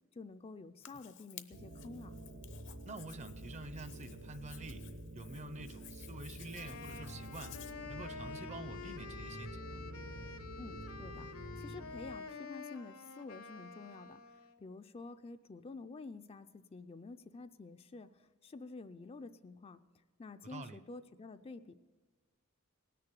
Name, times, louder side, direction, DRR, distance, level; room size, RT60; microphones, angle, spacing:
voice 1, 0.1-2.1 10.6-11.3 11.6-19.8 20.2-21.8, left 3 dB, 30° left, 9 dB, 0.4 m, -49 dB
Hands, 0.8-7.7, left 12 dB, 60° left, 0.7 m, -56 dB
sound 1, 1.5-12.2, right 1 dB, 75° right, 0.9 m, -48 dB
voice 2, 2.8-4.9 5.1-7.6 7.9-9.8 20.4-20.8, right 2 dB, 35° right, 12 dB, 0.6 m, -48 dB
Wind instrument woodwind instrument, 6.5-14.6, left 5 dB, 85° left, 1.1 m, -48 dB
18.5 x 6.8 x 8.2 m, 1.4 s
head